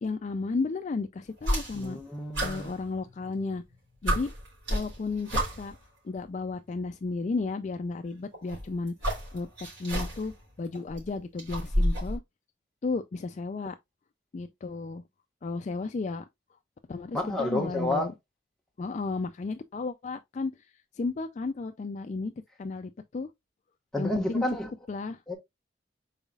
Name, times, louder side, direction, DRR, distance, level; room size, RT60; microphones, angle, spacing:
voice 1, 0.0-2.0 2.4-3.6 4.0-4.3 4.7-5.8 6.0-9.5 9.8-10.3 10.6-12.2 12.8-13.8 14.3-15.0 15.4-16.3 16.9-18.1 18.8-20.5 21.0-22.3 22.6-23.3 24.0-24.4 24.9-25.2, left 3 dB, 40° left, 0.3 m, -33 dB
sound 1, 1.4-2.0 2.3-3.4 3.7-3.8 4.1-5.8 6.9-7.0 8.3-10.4 10.7-12.2, equal, 75° right, 3.6 m, -30 dB
voice 2, 1.7-2.7 17.1-18.1 23.9-24.7 25.3-25.4, left 1 dB, 5° left, 1.2 m, -30 dB
5.5 x 4.0 x 2.3 m
head